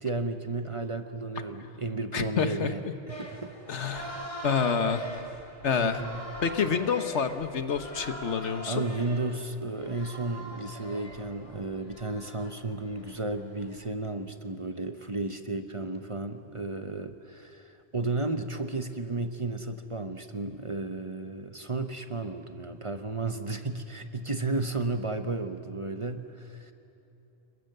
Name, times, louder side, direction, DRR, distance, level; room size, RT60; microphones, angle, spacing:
voice 1, 0.0-4.0 5.7-6.2 8.7-26.7, right 2 dB, 30° right, 8 dB, 1.0 m, -33 dB
voice 2, 2.1-2.7 3.7-5.0 5.6-6.0 6.4-8.8, left 6 dB, 85° left, 9 dB, 1.5 m, -28 dB
sound 1, 3.1-13.9, right 1 dB, 30° left, 2.4 m, -43 dB
28.5 x 22.5 x 6.7 m, 2.9 s
omnidirectional pair, 1.2 m